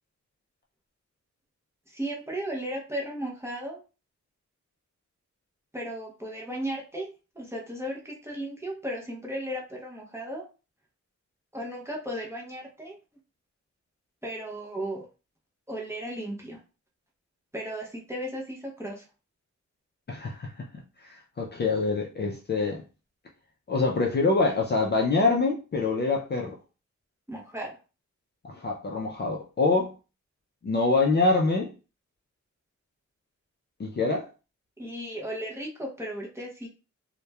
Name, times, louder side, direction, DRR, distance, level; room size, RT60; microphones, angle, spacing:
voice 1, 1.9-3.8 5.7-7.1 7.3-10.4 11.5-13.0 14.2-15.1 15.7-16.6 17.5-19.0 27.3-27.8 34.8-36.7, right 1 dB, 10° right, 0.6 m, -35 dB
voice 2, 20.1-20.7 21.0-22.8 23.7-26.6 28.5-29.9 30.6-31.7 33.8-34.3, left 3 dB, 35° left, 0.4 m, -25 dB
2.9 x 2.1 x 2.2 m
wide cardioid pair, 165°, 29 cm